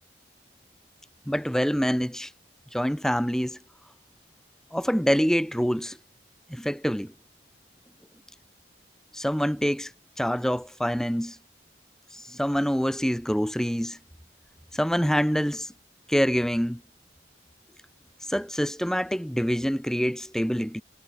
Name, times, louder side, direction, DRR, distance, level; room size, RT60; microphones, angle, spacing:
voice 1, 1.3-2.3 2.7-3.6 4.7-6.0 6.5-7.1 9.1-9.9 10.2-11.4 12.3-14.0 14.7-15.7 16.1-16.8 18.3-20.8, equal, 5° left, 1.8 m, -25 dB
head